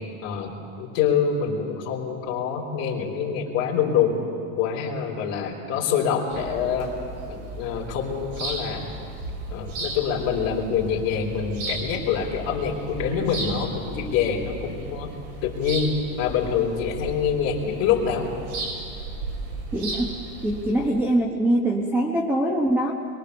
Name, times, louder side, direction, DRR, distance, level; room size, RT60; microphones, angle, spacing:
voice 1, 0.2-4.2 4.6-6.9 7.3-8.9 9.5-15.1 15.4-18.3, left 7 dB, 35° left, -1 dB, 3.9 m, -25 dB
sound 1, 6.3-20.9, right 2 dB, 55° right, 4.5 m, -35 dB
voice 2, 19.7-20.2 20.4-22.9, right 1 dB, 5° right, 0 dB, 0.9 m, -23 dB
25.5 x 22.5 x 6.9 m, 2.6 s
supercardioid pair, 170°, 43 cm